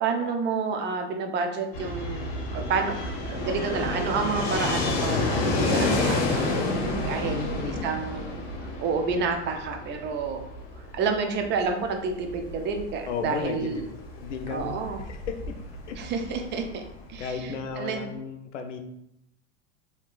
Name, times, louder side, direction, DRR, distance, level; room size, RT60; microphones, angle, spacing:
voice 1, 0.0-3.0 3.3-5.4 5.7-6.5 7.1-7.4 7.6-8.4 8.8-10.4 10.9-13.9 14.5-15.0 16.0-16.8 17.1-18.0, right 5 dB, 30° right, 5 dB, 0.5 m, -29 dB
Fixed-wing aircraft airplane, 1.7-17.5, left 2 dB, 50° left, 0.9 m, -30 dB
voice 2, 7.2-7.9 13.1-13.7 14.2-14.7 15.1-15.4 15.9-16.0 17.2-18.8, left 5 dB, 85° left, 6 dB, 0.5 m, -33 dB
3.5 x 2.7 x 2.4 m, 0.80 s
hypercardioid pair, 100°, 35 cm